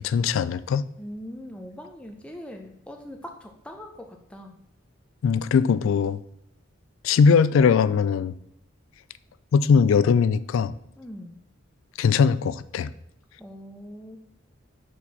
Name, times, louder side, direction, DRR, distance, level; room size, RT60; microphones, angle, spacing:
voice 1, 0.0-0.9 5.2-6.2 7.0-8.3 9.5-10.7 12.0-12.9, left 6 dB, 75° left, 0.3 m, -20 dB
voice 2, 1.0-4.6 11.0-11.4 13.4-14.2, equal, 5° left, 0.5 m, -41 dB
4.6 x 4.3 x 5.3 m
head